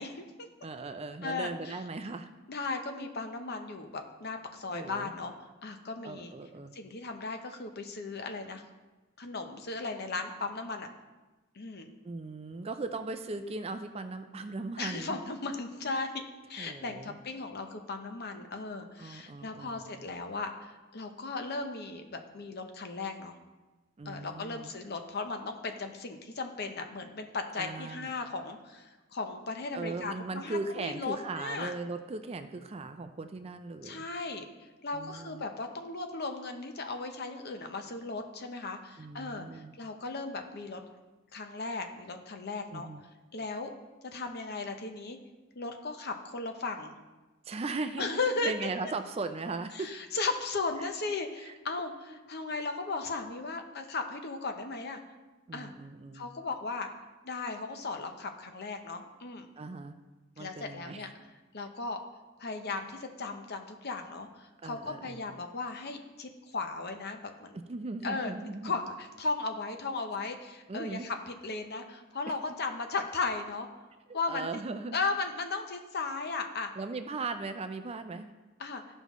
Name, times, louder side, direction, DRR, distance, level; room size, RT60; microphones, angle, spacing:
voice 1, 0.0-0.5 1.2-1.8 2.5-5.3 5.6-6.3 6.7-8.6 9.2-10.9 11.5-11.9 14.8-16.2 16.5-23.3 24.0-31.7 33.8-34.5 34.8-40.8 41.3-42.9 43.3-43.7 44.1-45.2 45.5-46.9 48.0-48.5 49.7-55.0 55.5-55.7 56.1-56.9 57.2-59.5 60.4-61.1 61.5-62.0 62.4-67.6 68.0-68.3 68.6-73.7 74.1-74.6 74.9-76.7 78.6-78.8, left 3 dB, 50° left, 6 dB, 0.8 m, -36 dB
voice 2, 0.6-2.3 4.7-5.1 6.0-6.7 12.0-15.2 16.6-17.2 19.0-19.9 24.0-24.7 27.6-28.1 29.7-34.0 34.9-35.4 39.0-39.7 42.7-43.0 47.5-49.9 51.4-51.5 52.5-52.6 55.5-56.3 59.6-59.9 60.4-61.1 64.6-65.2 67.7-68.7 70.7-71.1 74.1-75.0 76.8-78.3, right 3 dB, 30° right, 8 dB, 0.4 m, -38 dB
14.0 x 5.4 x 3.1 m, 1.2 s
head